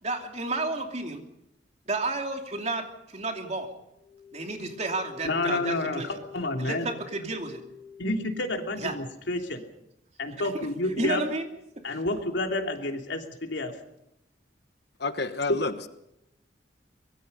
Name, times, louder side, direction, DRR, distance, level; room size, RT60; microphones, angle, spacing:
voice 1, 0.0-1.2 1.9-3.7 4.3-6.1 6.6-7.6 8.8-9.0 11.0-11.5, right 2 dB, 40° right, 4 dB, 2.9 m, -31 dB
sound 1, 3.9-8.8, left 6 dB, 15° right, 3.1 m, -47 dB
voice 2, 5.2-6.9 8.0-9.6 10.2-11.2 11.8-13.8 15.5-15.6, left 2 dB, 80° left, 4 dB, 3.1 m, -29 dB
voice 3, 15.0-15.9, left 3 dB, 60° left, 9 dB, 1.2 m, -30 dB
24.5 x 21.5 x 5.5 m, 0.85 s
head